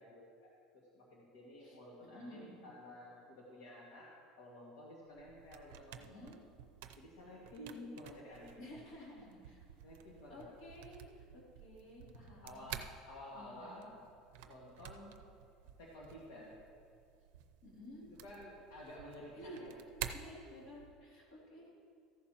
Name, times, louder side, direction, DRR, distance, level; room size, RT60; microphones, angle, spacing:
voice 1, 0.0-4.1 4.4-6.3 7.0-8.6 9.8-10.5 12.4-13.9 14.4-15.1 15.8-16.5 18.2-19.8, left 1 dB, 75° left, -4 dB, 1.9 m, -52 dB
voice 2, 1.6-2.6 6.0-6.4 8.6-9.6 10.3-12.7 13.3-13.9 17.6-18.1 19.3-19.6 20.1-21.7, left 1 dB, 55° left, -4 dB, 3.1 m, -53 dB
sound 1, 5.1-21.1, right 10 dB, 85° right, 0.6 m, -52 dB
14.5 x 11.5 x 3.0 m, 2.3 s
cardioid pair, 175°, 0 cm